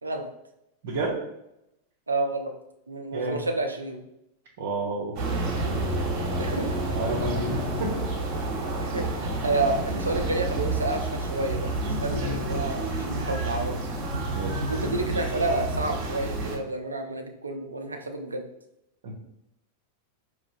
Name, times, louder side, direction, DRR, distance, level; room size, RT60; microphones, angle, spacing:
voice 1, 0.8-1.2 3.1-3.4 4.6-5.2 6.9-8.0 14.3-14.7 19.0-19.2, right 2 dB, 55° right, -4 dB, 0.8 m, -30 dB
voice 2, 2.1-2.5 2.9-4.0 6.4-6.8 8.8-13.8 14.7-18.4, right 2 dB, 80° right, 4 dB, 0.5 m, -30 dB
sound 1, 5.2-16.6, right 2 dB, 40° right, 1.3 m, -29 dB
4.9 x 3.0 x 2.6 m, 0.83 s
figure-of-eight pair, 90°, 0 cm